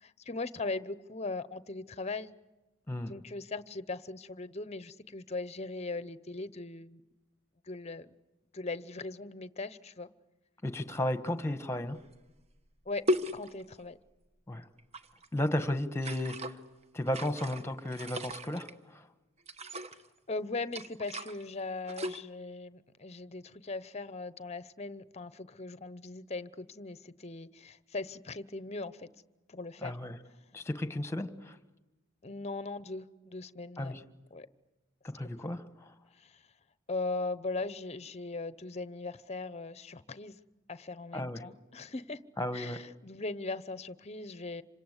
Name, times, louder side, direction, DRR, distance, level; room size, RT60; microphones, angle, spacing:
voice 1, 0.0-2.3 3.1-7.0 7.7-8.1 8.5-10.1 12.9-13.1 13.3-14.0 20.3-29.1 29.5-29.9 32.2-34.0 34.3-34.5 35.4-35.6 36.2-36.4 36.9-40.4 40.7-42.2 42.5-44.6, left 3 dB, 30° left, 0.8 m, -39 dB
voice 2, 10.6-12.0 14.5-14.6 15.3-16.5 16.9-19.0 29.8-30.2 30.5-31.5 33.8-34.0 35.0-35.9 41.1-41.4 42.4-42.8, left 1 dB, 15° left, 1.3 m, -34 dB
sound 1, 12.1-12.2 13.1-13.8 14.8-15.3 15.9-16.6 17.1-18.7 19.5-20.1 20.7-21.4 21.8-22.2, equal, 30° right, 1.2 m, -36 dB
27.5 x 25.5 x 8.1 m
head